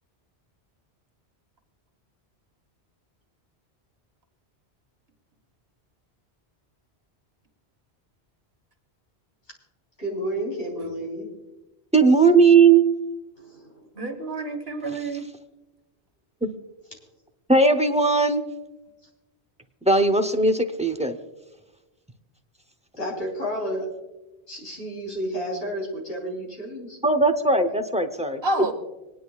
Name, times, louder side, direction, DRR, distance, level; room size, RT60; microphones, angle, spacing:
voice 1, 10.0-11.3 13.4-13.9 23.0-23.9 24.5-27.0, equal, 75° left, -2 dB, 3.7 m, -31 dB
voice 2, 11.9-12.8 16.4-16.5 17.5-18.4 19.8-21.2 27.0-28.4, right 4 dB, 10° right, 7 dB, 0.6 m, -18 dB
voice 3, 14.0-15.3 28.4-28.7, right 2 dB, 65° right, 4 dB, 1.7 m, -28 dB
26.0 x 10.0 x 2.4 m, 1.1 s
omnidirectional pair, 1.1 m